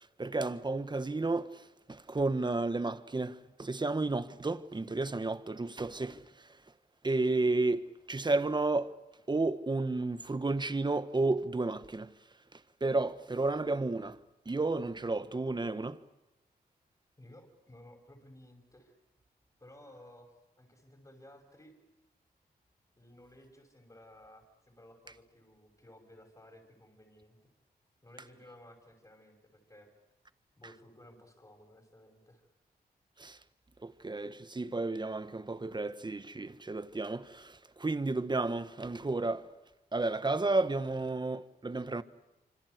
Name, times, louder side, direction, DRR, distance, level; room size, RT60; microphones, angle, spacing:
voice 1, 0.2-6.6 7.0-9.0 9.3-12.1 12.5-14.2 14.4-16.0 33.2-33.4 33.8-39.5 39.9-42.0, right 3 dB, 25° right, 1.4 m, -32 dB
voice 2, 17.2-19.0 19.6-21.7 23.0-27.4 28.0-29.9 30.6-32.5, left 1 dB, 25° left, 6.0 m, -56 dB
26.5 x 25.5 x 8.1 m
cardioid pair, 60°, 17 cm